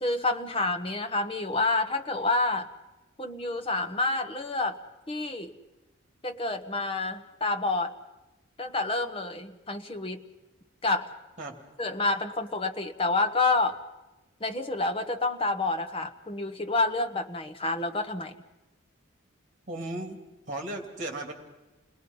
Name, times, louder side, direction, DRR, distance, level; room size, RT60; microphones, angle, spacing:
voice 1, 0.0-2.7 3.2-4.8 5.1-5.5 6.2-7.9 8.6-10.2 10.8-11.1 11.8-13.8 14.4-18.3, left 2 dB, 25° left, 6 dB, 1.2 m, -28 dB
voice 2, 19.7-20.2 20.5-21.3, right 1 dB, 35° right, 3 dB, 2.7 m, -35 dB
29.5 x 20.5 x 5.5 m, 1.0 s
head